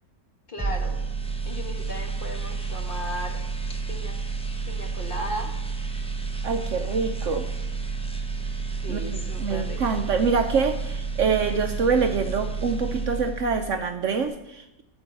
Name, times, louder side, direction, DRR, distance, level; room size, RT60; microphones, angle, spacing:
voice 1, 0.5-1.0 1.4-3.4 3.9-4.1 4.7-5.5 8.8-10.1, equal, 35° left, 1 dB, 1.6 m, -36 dB
sound 1, 0.6-13.7 14.0-14.3, right 4 dB, 5° left, 0.6 m, -30 dB
voice 2, 6.4-7.5 8.9-14.8, right 5 dB, 60° right, 6 dB, 0.9 m, -25 dB
12.5 x 4.6 x 7.7 m, 0.90 s
omnidirectional pair, 1.6 m